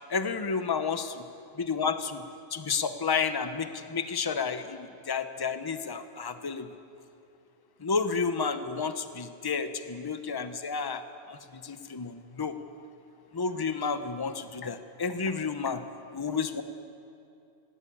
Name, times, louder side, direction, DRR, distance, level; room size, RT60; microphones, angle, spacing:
voice 1, 0.1-1.1 1.6-2.2 2.5-6.7 7.8-11.0 11.3-12.6 13.3-15.8 16.1-16.6, left 5 dB, 20° left, 10 dB, 0.8 m, -31 dB
19.5 x 16.5 x 8.6 m, 2.6 s
omnidirectional pair, 1.3 m